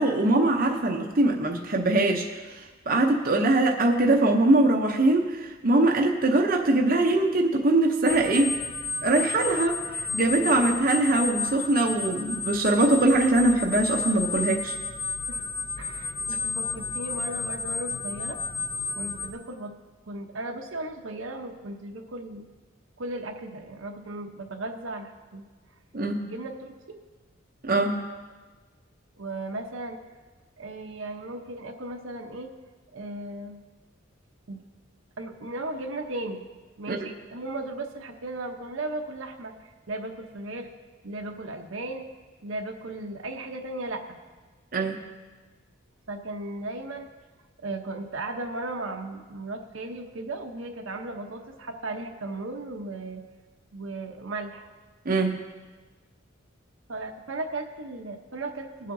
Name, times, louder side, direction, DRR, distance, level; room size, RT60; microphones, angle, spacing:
voice 1, 0.0-2.2 2.6-8.5 9.0-14.7 25.9-26.2 27.6-28.0 36.9-37.0 44.7-45.0 55.0-55.4, right 2 dB, 45° right, 1 dB, 0.7 m, -22 dB
sound 1, 8.1-19.3, left 4 dB, 25° left, 0.7 m, -32 dB
voice 2, 10.3-10.6 15.3-15.4 15.8-18.4 19.0-19.7 20.1-22.4 23.0-25.5 26.2-26.7 29.2-30.0 30.6-32.5 32.9-33.6 34.5-34.6 35.2-36.4 36.8-39.5 39.9-40.7 41.0-42.1 42.4-44.2 46.1-47.1 47.6-53.2 53.7-54.7 56.9-58.9, right 2 dB, 75° right, 4 dB, 0.9 m, -36 dB
20.0 x 7.5 x 2.7 m, 1.3 s
head